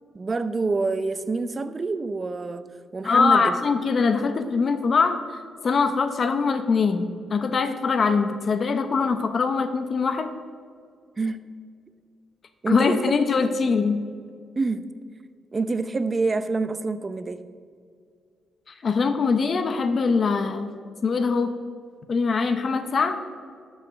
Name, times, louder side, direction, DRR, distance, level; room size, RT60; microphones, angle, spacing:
voice 1, 0.1-2.6 2.9-3.6 11.2-11.4 12.6-13.1 14.6-14.9 15.5-17.4, right 3 dB, 35° right, 12 dB, 0.6 m, -26 dB
voice 2, 3.0-10.3 12.7-14.0 18.8-20.7 21.0-21.5 22.1-23.2, left 5 dB, 50° left, 9 dB, 0.7 m, -22 dB
12.5 x 5.7 x 6.2 m, 2.2 s
cardioid pair, 75°, 0 cm